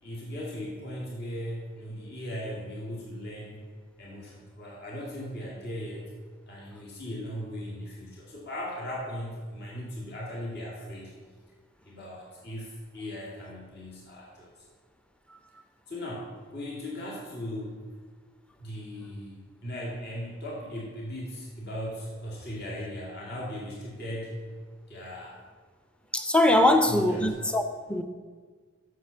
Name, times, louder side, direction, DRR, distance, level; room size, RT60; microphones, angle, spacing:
voice 1, 0.0-3.6 4.0-6.0 6.5-11.1 11.8-14.6 15.9-17.8 18.6-24.5 24.9-25.4 26.5-27.3, equal, 50° left, 2.1 m, -38 dB
voice 2, 26.1-28.0, left 1 dB, 5° left, 0.6 m, -22 dB
7.9 x 6.6 x 6.9 m
head